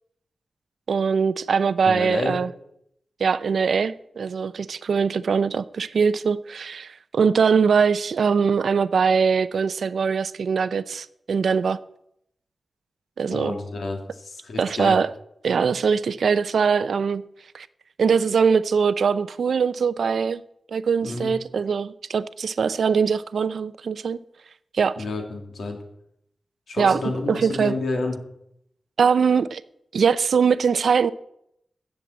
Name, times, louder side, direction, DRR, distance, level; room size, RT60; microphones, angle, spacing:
voice 1, 0.9-2.5 3.2-11.8 13.2-13.5 14.6-15.1 15.4-17.2 17.5-17.7 18.0-20.4 20.7-24.2 24.7-25.0 26.8-27.0 27.3-27.7 29.0-29.6 29.9-31.1, right 6 dB, 80° right, 15 dB, 0.5 m, -22 dB
voice 2, 1.8-2.4 13.3-15.0 21.0-21.3 25.0-25.8 26.7-28.2, left 2 dB, 85° left, 3 dB, 2.9 m, -29 dB
14.0 x 7.4 x 8.1 m, 0.76 s
wide cardioid pair, 135°, 0 cm